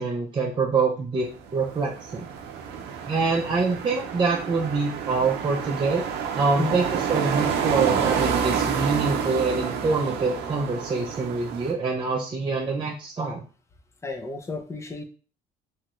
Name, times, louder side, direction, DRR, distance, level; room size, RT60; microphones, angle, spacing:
voice 1, 0.0-2.3 3.0-6.0 6.3-13.4, right 4 dB, 30° right, -2 dB, 0.5 m, -25 dB
sound 1, 1.3-11.7, right 7 dB, 75° right, 0.6 m, -29 dB
voice 2, 14.0-15.0, left 3 dB, 15° left, 5 dB, 0.5 m, -31 dB
3.1 x 2.3 x 3.0 m, 0.38 s
cardioid pair, 110°, 17 cm